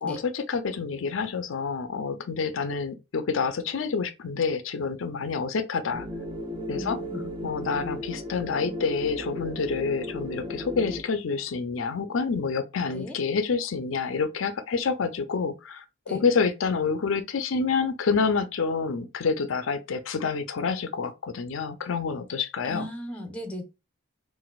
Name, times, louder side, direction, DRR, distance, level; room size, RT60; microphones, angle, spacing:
voice 1, 0.0-6.1 6.7-7.0 7.4-15.8 16.1-22.9, left 5 dB, 80° left, 0.5 m, -28 dB
sound 1, 5.9-11.0, left 1 dB, 25° right, 0.6 m, -35 dB
voice 2, 6.7-7.3 12.9-13.2 16.1-16.2 22.6-23.6, equal, 5° left, 0.8 m, -36 dB
4.0 x 2.5 x 2.3 m
head